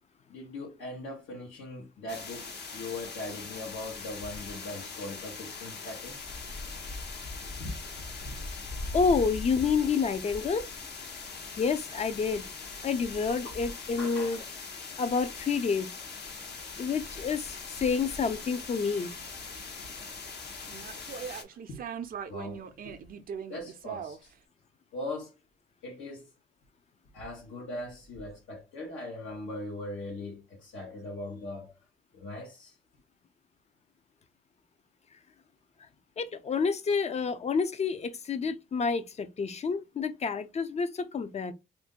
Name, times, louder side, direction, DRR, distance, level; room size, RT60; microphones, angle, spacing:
voice 1, 0.3-6.2 7.6-7.8 8.2-8.3 13.9-14.5 21.7-21.8 22.3-23.0 23.5-24.3 24.9-25.3 25.8-26.3 27.1-31.7 32.1-32.7, left 2 dB, 75° left, 1.0 m, -40 dB
sound 1, 2.1-21.4, left 4 dB, 55° left, 0.9 m, -41 dB
voice 2, 8.9-10.7 11.6-12.4 12.8-14.4 15.0-15.9 16.8-19.1 36.2-41.5, left 5 dB, 35° left, 0.5 m, -29 dB
sound 2, 19.1-20.3 20.7-24.3, right 7 dB, 45° right, 0.5 m, -41 dB
2.7 x 2.6 x 3.6 m
cardioid pair, 90°, 20 cm